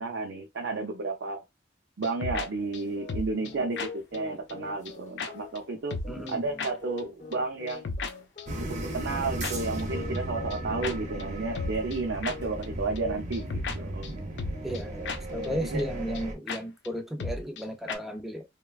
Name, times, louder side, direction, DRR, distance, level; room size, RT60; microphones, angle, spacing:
voice 1, 0.0-1.4 2.0-6.0 6.3-7.8 8.7-14.1 15.5-15.9, right 3 dB, 80° right, 0.5 m, -32 dB
sound 1, 2.0-2.5 2.7-2.8 3.1-3.5 3.8-3.9 4.1-4.2 4.5-4.6 4.8-4.9 5.2-5.3 5.5-5.6 5.9-6.3 6.6-6.7 7.0-7.1 7.3-7.4 7.7-8.1 8.4-8.5 9.4-9.5 9.8-9.9 10.1-10.2 10.5-10.6 10.8-10.9 11.2-11.3 11.5-12.0 12.2-12.3 12.6-12.7 13.0-13.1 13.3-13.8 14.0-14.1 14.4-14.8 15.0-15.2 15.4-15.5 15.8-15.9 16.1-16.2 16.5-16.6 16.8-16.9 17.2-17.6 17.9-18.0, left 4 dB, 70° left, 0.5 m, -34 dB
sound 2, 2.3-16.0, left 4 dB, 40° left, 0.7 m, -45 dB
voice 2, 6.1-6.4 14.6-18.4, equal, ahead, 0.5 m, -34 dB
sound 3, 8.5-16.3, right 1 dB, 45° right, 0.6 m, -36 dB
3.1 x 2.2 x 2.3 m
head